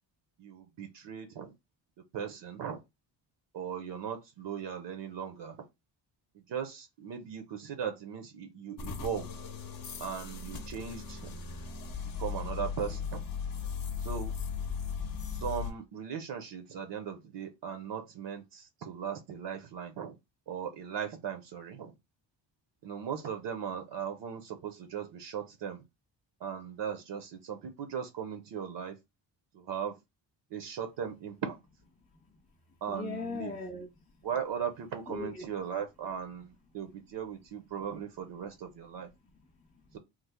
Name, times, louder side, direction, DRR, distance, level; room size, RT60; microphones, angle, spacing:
voice 1, 0.4-1.5 2.1-2.8 3.5-5.6 6.5-9.3 10.0-11.4 12.2-13.2 14.0-14.3 15.3-20.2 20.5-21.9 22.8-25.8 26.4-29.0 29.5-29.9 30.5-31.6 32.8-33.5 34.2-39.1 39.9-40.0, right 7 dB, 65° right, 0.6 m, -38 dB
sound 1, 8.8-15.7, left 6 dB, 50° left, 0.7 m, -37 dB
voice 2, 32.9-34.2 35.1-35.4 39.3-39.7, left 4 dB, 15° left, 0.5 m, -40 dB
3.1 x 2.0 x 3.5 m
cardioid pair, 110°, 45 cm